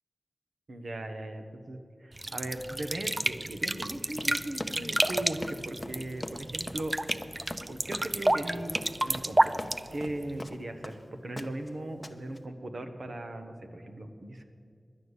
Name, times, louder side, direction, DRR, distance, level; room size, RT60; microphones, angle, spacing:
voice 1, 0.7-6.9 7.7-14.4, right 1 dB, 70° right, 6 dB, 1.1 m, -38 dB
sound 1, 2.2-10.4, right 1 dB, 25° right, 0.4 m, -30 dB
Run, 4.1-11.0 11.4-11.7 12.0-12.4, left 1 dB, 15° left, 0.8 m, -41 dB
11.5 x 9.6 x 8.1 m, 2.4 s
wide cardioid pair, 60°, 0 cm